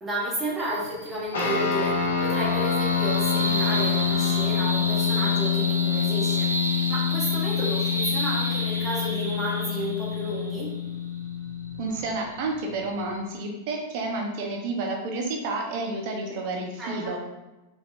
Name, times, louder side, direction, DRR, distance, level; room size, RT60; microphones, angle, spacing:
voice 1, 0.0-10.7 16.8-17.2, right 1 dB, 15° right, -6 dB, 1.4 m, -32 dB
sound 1, 0.6-13.2, right 1 dB, 90° right, 0.5 m, -33 dB
sound 2, 1.3-12.0, left 7 dB, 65° left, 1.0 m, -26 dB
voice 2, 11.8-17.2, right 2 dB, 45° right, 1 dB, 0.8 m, -30 dB
4.3 x 3.1 x 2.6 m, 1.0 s
figure-of-eight pair, 90°, 0 cm